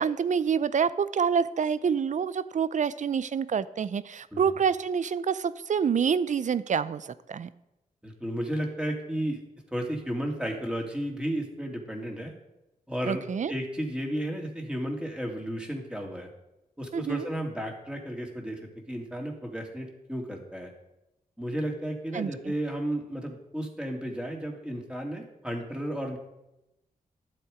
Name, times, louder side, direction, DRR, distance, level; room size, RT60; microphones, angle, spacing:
voice 1, 0.0-7.5 13.0-13.5 16.9-17.3 22.1-22.3, right 7 dB, 55° right, 16 dB, 0.6 m, -27 dB
voice 2, 8.0-9.4 9.7-12.3 12.9-16.3 16.8-20.7 21.4-26.2, equal, 5° right, 1 dB, 2.7 m, -33 dB
11.5 x 7.7 x 5.1 m, 0.91 s
cardioid pair, 55°, 15 cm